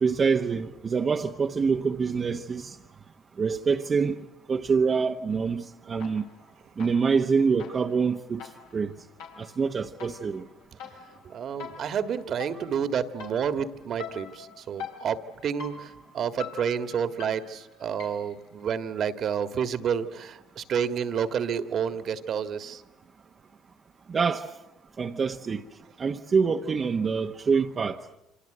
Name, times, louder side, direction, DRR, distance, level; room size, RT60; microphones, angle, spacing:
voice 1, 0.0-2.8 3.4-4.2 4.5-6.3 6.8-8.9 9.4-10.5 24.1-24.5 25.0-25.6 26.0-28.0, right 5 dB, 35° right, 1.0 m, -26 dB
sound 1, 6.0-6.5 6.8-18.4, left 7 dB, 80° left, 4.6 m, -45 dB
voice 2, 11.3-22.8, right 7 dB, 50° right, 1.7 m, -30 dB
27.5 x 26.0 x 7.9 m
hypercardioid pair, 75°, 0 cm